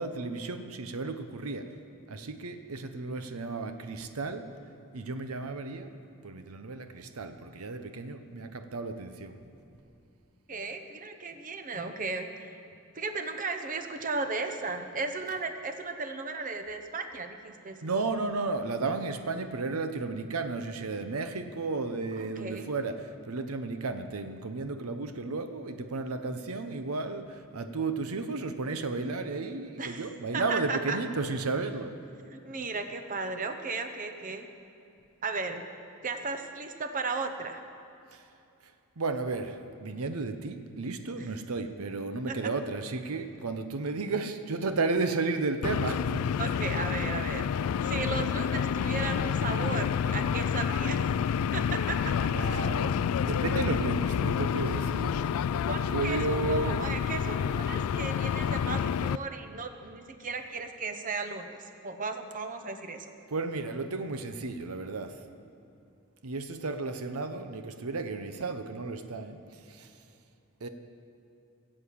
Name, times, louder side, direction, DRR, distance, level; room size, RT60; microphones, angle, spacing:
voice 1, 0.0-1.7 2.1-4.5 4.9-5.9 6.2-9.4 17.8-32.0 38.1-38.2 39.0-46.3 52.3-55.2 55.9-56.8 63.3-65.2 66.2-69.9 70.6-70.7, right 3 dB, 90° right, 8 dB, 0.8 m, -33 dB
voice 2, 10.5-12.5 12.9-17.8 22.2-22.7 29.8-30.1 30.3-31.0 32.3-34.5 35.2-35.6 36.0-37.6 41.2-41.3 42.3-42.4 46.4-47.5 47.8-51.0 51.5-52.1 55.7-63.1, right 4 dB, 40° right, 7 dB, 0.8 m, -35 dB
sound 1, 45.6-59.2, left 7 dB, 85° left, 0.3 m, -29 dB
16.0 x 7.6 x 8.5 m, 2.6 s
head